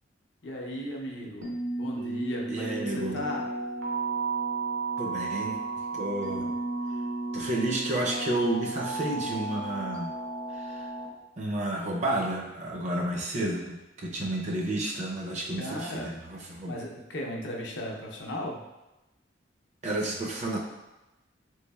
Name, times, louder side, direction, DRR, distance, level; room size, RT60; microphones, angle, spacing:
voice 1, 0.4-3.4 6.4-6.5 15.6-16.1 16.7-18.6, left 1 dB, 70° left, -1 dB, 0.5 m, -36 dB
sound 1, 1.4-11.1, right 3 dB, 85° right, 0.7 m, -33 dB
voice 2, 2.5-3.2 5.0-5.6 5.9-6.5 7.3-10.1 10.5-10.9 11.4-16.7 19.8-20.6, right 1 dB, 35° right, 0 dB, 0.4 m, -31 dB
3.4 x 3.1 x 2.2 m, 1.0 s
head